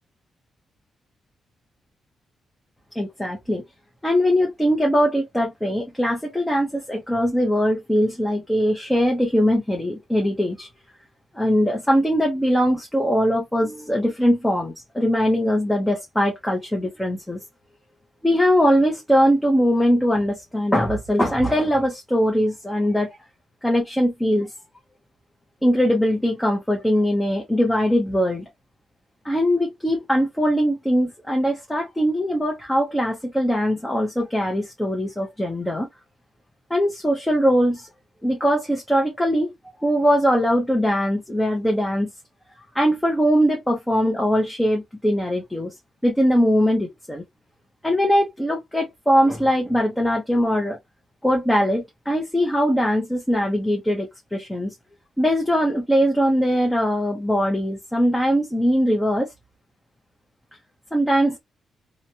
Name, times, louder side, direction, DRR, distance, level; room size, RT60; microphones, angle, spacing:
voice 1, 2.9-3.6 4.0-10.7 11.3-17.4 18.2-23.1 23.6-24.5 25.6-28.4 29.2-35.9 36.7-37.9 38.2-39.5 39.8-42.1 42.7-45.7 46.0-47.2 47.8-50.8 51.2-54.7 55.2-59.3 60.9-61.4, equal, 5° left, 0.6 m, -21 dB
2.9 x 2.1 x 2.6 m
wide cardioid pair, 150°, 0 cm